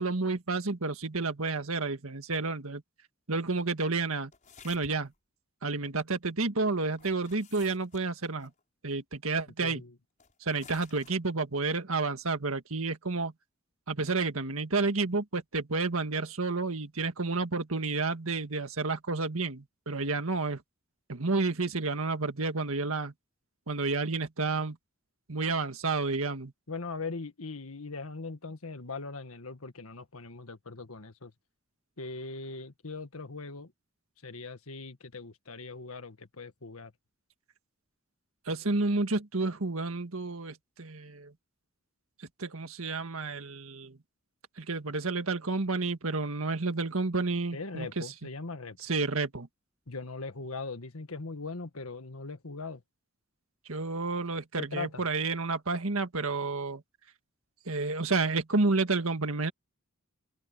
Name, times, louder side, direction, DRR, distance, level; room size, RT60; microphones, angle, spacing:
voice 1, 0.0-2.8 3.3-4.3 4.6-5.1 5.6-8.5 8.8-9.8 10.4-13.3 13.9-20.6 21.1-23.1 23.7-24.8 25.3-26.5 38.5-41.3 42.4-44.0 44.6-48.1 48.8-49.5 53.7-56.8 57.7-59.5, right 3 dB, 80° right, 1.8 m, -30 dB
sound 1, 4.3-5.2 6.9-8.6 10.2-11.2, left 6 dB, 35° left, 5.5 m, -54 dB
voice 2, 9.6-9.9 26.7-31.3 32.0-33.7 34.2-36.9 47.5-48.8 49.9-52.8 54.6-55.0, left 3 dB, 85° left, 1.7 m, -40 dB
open air
head